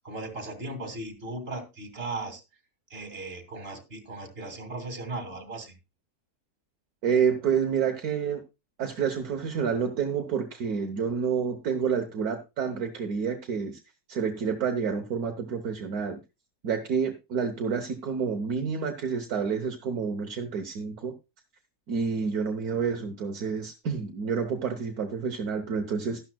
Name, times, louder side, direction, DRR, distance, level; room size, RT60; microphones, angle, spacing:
voice 1, 0.0-2.4 2.9-5.8, right 2 dB, 35° right, 6 dB, 2.6 m, -37 dB
voice 2, 7.0-8.4 8.8-13.8 14.1-16.2 16.6-21.1 21.9-26.2, right 6 dB, 65° right, 6 dB, 1.5 m, -29 dB
12.5 x 12.0 x 2.2 m, 0.25 s
omnidirectional pair, 1.7 m